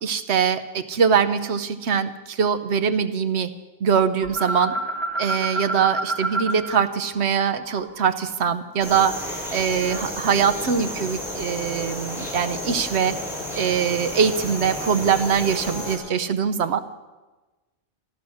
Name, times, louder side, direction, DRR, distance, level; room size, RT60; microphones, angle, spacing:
voice 1, 0.0-3.5 3.8-4.7 5.2-9.2 9.5-13.2 13.5-16.8, right 7 dB, 65° right, 10 dB, 1.0 m, -22 dB
sound 1, 4.2-6.8 7.1-9.4, right 2 dB, 25° right, 1.5 m, -30 dB
sound 2, 8.8-16.0, left 1 dB, ahead, 4.4 m, -32 dB
14.0 x 12.0 x 6.3 m, 1.2 s
omnidirectional pair, 1.2 m